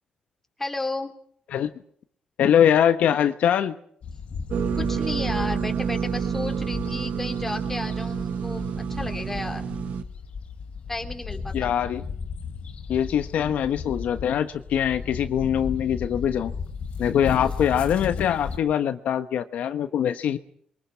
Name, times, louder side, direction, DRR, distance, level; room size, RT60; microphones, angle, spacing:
voice 1, 0.6-1.1 4.8-9.6 10.9-11.7 17.2-17.5, left 2 dB, 10° left, 4 dB, 3.2 m, -33 dB
voice 2, 2.4-3.7 11.5-12.0 12.9-16.5 17.0-20.4, left 9 dB, 75° left, 9 dB, 1.2 m, -23 dB
sound 1, 4.0-18.6, left 5 dB, 50° left, 3.3 m, -36 dB
sound 2, 4.5-10.0, right 7 dB, 65° right, 1.4 m, -28 dB
29.0 x 23.5 x 5.8 m, 0.63 s
cardioid pair, 155°, 3 cm